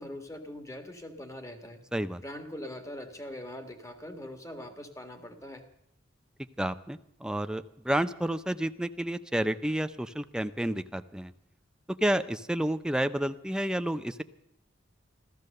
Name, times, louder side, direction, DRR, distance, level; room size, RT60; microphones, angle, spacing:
voice 1, 0.0-1.8 2.2-5.6, left 1 dB, 15° left, 5 dB, 1.7 m, -42 dB
voice 2, 1.9-2.2 6.6-11.3 12.0-14.2, right 1 dB, 5° right, 10 dB, 0.5 m, -30 dB
14.0 x 14.0 x 6.6 m, 0.77 s
head